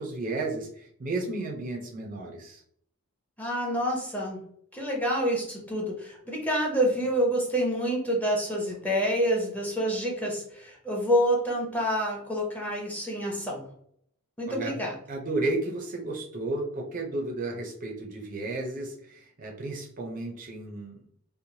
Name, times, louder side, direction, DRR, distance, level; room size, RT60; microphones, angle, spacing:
voice 1, 0.0-2.6 14.5-21.0, right 2 dB, 40° right, 1 dB, 0.4 m, -33 dB
voice 2, 3.4-4.4 4.7-13.7 14.4-14.9, equal, 5° left, -2 dB, 0.6 m, -27 dB
2.9 x 2.1 x 2.6 m, 0.66 s
head